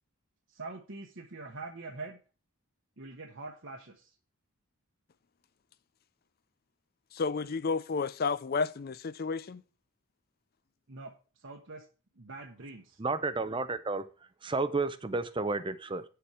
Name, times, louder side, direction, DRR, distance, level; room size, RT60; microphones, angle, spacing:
voice 1, 0.6-2.2 3.0-3.8 10.9-11.1 11.4-11.8 12.2-12.8, right 3 dB, 60° right, 1.1 m, -43 dB
voice 2, 7.1-9.6, left 4 dB, 45° left, 0.4 m, -31 dB
voice 3, 13.0-14.1 14.4-16.0, right 3 dB, 20° right, 0.6 m, -31 dB
9.0 x 6.9 x 4.8 m
head